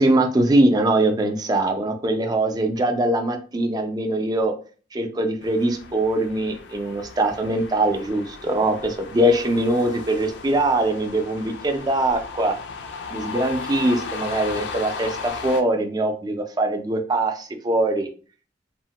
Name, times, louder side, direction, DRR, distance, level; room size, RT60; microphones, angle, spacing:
voice 1, 0.0-4.5 4.9-12.5 13.1-18.1, right 1 dB, 20° right, 6 dB, 0.3 m, -22 dB
sound 1, 5.4-15.6, left 5 dB, 75° left, 0.4 m, -36 dB
2.9 x 2.1 x 2.8 m, 0.39 s
head